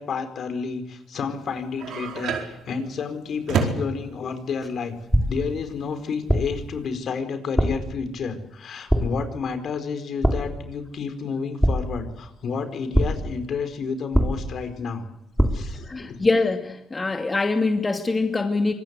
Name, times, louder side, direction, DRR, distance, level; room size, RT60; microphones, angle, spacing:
voice 1, 0.0-5.0 5.3-15.0 15.5-16.2, left 5 dB, 60° left, 9 dB, 4.5 m, -30 dB
sound 1, 1.3-6.9, right 5 dB, 75° right, 4.6 m, -30 dB
sound 2, 5.1-5.6 6.3-6.7 7.6-8.0 8.9-9.3 10.2-10.7 11.6-12.2 12.9-13.4 14.1-14.7 15.4-15.8, equal, ahead, 3.9 m, -23 dB
voice 2, 15.9-18.7, left 3 dB, 25° left, 5 dB, 2.4 m, -23 dB
25.5 x 20.0 x 8.3 m, 0.90 s
cardioid pair, 85°, 0 cm